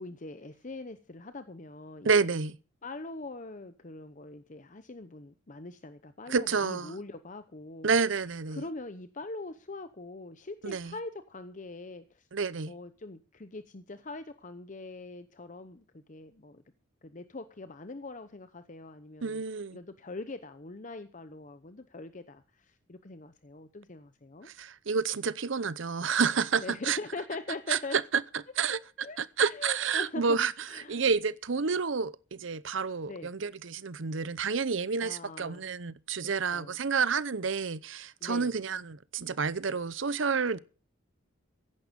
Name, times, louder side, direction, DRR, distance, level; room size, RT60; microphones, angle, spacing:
voice 1, 0.0-2.3 2.8-7.9 8.5-12.3 12.7-16.6 17.0-19.4 19.7-24.5 26.5-28.0 29.0-30.4 30.7-31.0 33.1-33.3 35.0-35.6 36.2-36.8 38.2-38.5, left 2 dB, 40° left, 0.8 m, -42 dB
voice 2, 2.0-2.6 6.3-6.9 7.8-8.6 10.6-10.9 12.3-12.7 19.2-19.8 24.5-27.0 27.7-28.0 28.6-28.8 29.2-40.6, right 5 dB, 70° right, 0.7 m, -29 dB
15.5 x 11.0 x 5.3 m
head